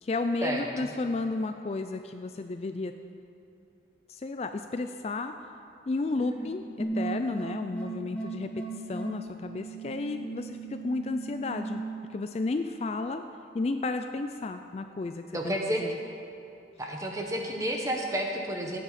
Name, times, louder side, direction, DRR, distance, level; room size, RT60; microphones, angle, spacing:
voice 1, 0.0-2.9 4.1-5.3 5.9-8.5 8.9-11.8 12.1-13.2 13.5-16.0, left 3 dB, 35° left, 7 dB, 0.3 m, -32 dB
sound 1, 6.8-11.8, right 3 dB, 10° left, 1.0 m, -37 dB
voice 2, 15.3-15.8 16.8-18.8, right 1 dB, 15° right, 1 dB, 1.2 m, -31 dB
16.0 x 9.0 x 4.1 m, 2.8 s
head